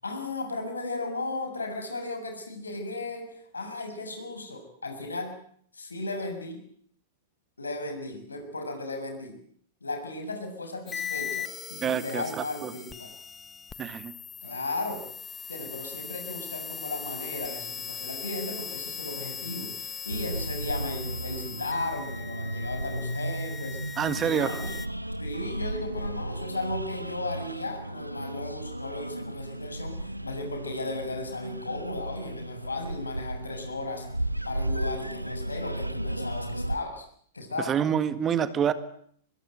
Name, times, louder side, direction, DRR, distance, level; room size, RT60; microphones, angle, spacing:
voice 1, 0.0-5.4 5.7-6.6 7.6-9.4 9.8-13.1 14.4-15.0 15.5-24.8 25.2-34.1 34.4-37.0 37.3-37.7, left 2 dB, 75° left, 6 dB, 6.9 m, -35 dB
sound 1, 10.9-24.9, left 7 dB, 15° left, 1.4 m, -39 dB
voice 2, 11.8-12.7 13.8-14.2 24.0-24.6 37.6-38.7, right 8 dB, 25° right, 13 dB, 1.8 m, -27 dB
sound 2, 20.1-36.8, right 1 dB, 90° right, 1.1 m, -34 dB
24.5 x 21.5 x 9.3 m, 0.63 s
figure-of-eight pair, 100°, 0 cm